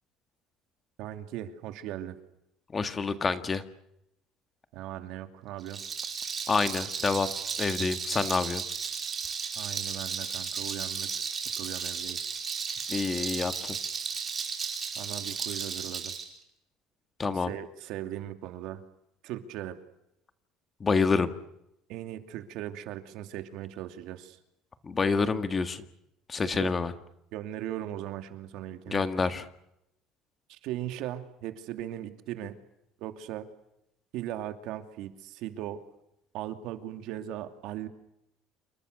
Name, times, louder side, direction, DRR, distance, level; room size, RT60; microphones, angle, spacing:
voice 1, 1.0-2.2 4.7-5.8 9.6-11.1 11.6-12.2 15.0-16.1 17.3-18.8 19.2-19.8 21.9-24.4 26.5-26.7 27.3-29.0 30.5-32.6 33.0-33.5 34.1-35.8 36.3-37.9, right 12 dB, 65° right, 8 dB, 2.7 m, -38 dB
voice 2, 2.7-3.6 6.5-7.3 7.6-8.6 12.9-13.8 17.2-17.5 20.8-21.3 24.8-25.8 26.3-26.9 28.9-29.5, left 4 dB, 20° left, 10 dB, 1.7 m, -27 dB
Rattle, 5.6-16.2, right 6 dB, 25° right, 5.2 m, -34 dB
28.5 x 24.5 x 6.8 m, 0.80 s
cardioid pair, 165°, 0 cm